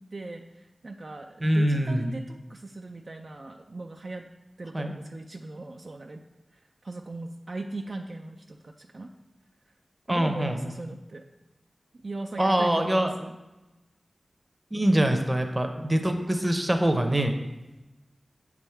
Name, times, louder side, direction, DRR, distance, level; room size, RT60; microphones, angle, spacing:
voice 1, 0.0-4.3 4.6-9.1 9.7-9.8 10.1-11.2 11.9-13.4, right 2 dB, 55° right, 4 dB, 0.3 m, -39 dB
voice 2, 1.4-2.1 4.7-4.9 10.1-10.7 12.4-13.1 14.7-17.4, right 1 dB, 25° right, 5 dB, 0.7 m, -24 dB
6.9 x 3.6 x 4.4 m, 1.0 s
wide cardioid pair, 55°, 0 cm